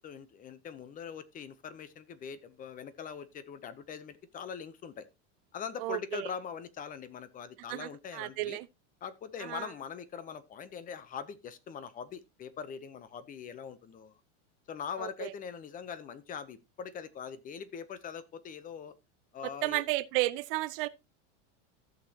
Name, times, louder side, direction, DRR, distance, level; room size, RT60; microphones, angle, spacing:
voice 1, 0.0-5.1 5.5-8.6 9.0-14.1 14.7-18.9 19.3-19.8, left 7 dB, 20° left, 0.8 m, -42 dB
voice 2, 5.8-6.3 7.7-8.7 9.4-9.7 15.0-15.3 19.4-20.9, right 19 dB, 50° right, 0.5 m, -33 dB
14.5 x 6.4 x 2.8 m
supercardioid pair, 145°, 37 cm